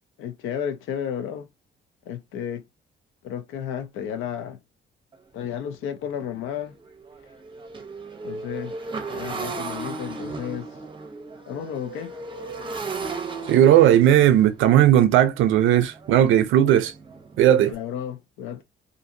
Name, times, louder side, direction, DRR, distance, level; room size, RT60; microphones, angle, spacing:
voice 1, 0.2-1.5 2.1-2.6 3.2-4.6 5.3-6.8 8.2-8.7 9.1-10.7 11.5-12.1 17.6-18.6, left 9 dB, 90° left, 0.5 m, -32 dB
Motorcycle, 5.1-5.2 5.7-5.9 6.1-17.7, right 4 dB, 25° right, 0.6 m, -36 dB
voice 2, 13.5-16.9 17.4-17.7, right 11 dB, 85° right, 0.4 m, -16 dB
2.5 x 2.5 x 2.6 m
cardioid pair, 90°, 20 cm